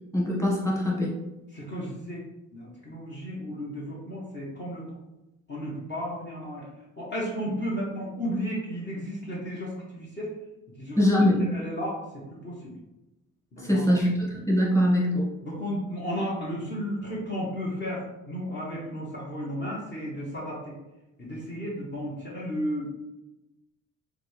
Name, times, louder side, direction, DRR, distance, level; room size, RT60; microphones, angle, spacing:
voice 1, 0.1-1.1 11.0-11.4 13.6-15.3, left 1 dB, 10° left, -4 dB, 1.6 m, -23 dB
voice 2, 1.5-2.2 2.5-5.0 5.5-6.7 7.0-10.4 10.8-11.0 11.4-12.0 12.3-12.7 13.5-14.0 15.4-20.7 21.2-22.8, equal, 35° left, -5 dB, 1.3 m, -33 dB
6.4 x 2.4 x 3.3 m, 0.97 s
cardioid pair, 90°, 30 cm